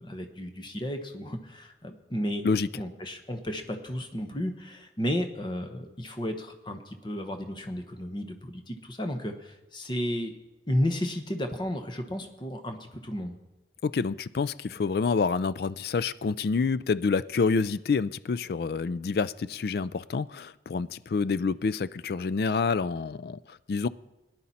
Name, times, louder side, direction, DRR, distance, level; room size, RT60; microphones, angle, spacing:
voice 1, 0.0-2.4 2.7-10.4 10.7-13.4, equal, 25° left, 6 dB, 1.1 m, -33 dB
voice 2, 13.8-23.4 23.7-23.9, left 4 dB, 55° left, 17 dB, 0.3 m, -27 dB
18.0 x 10.5 x 4.2 m, 1.0 s
head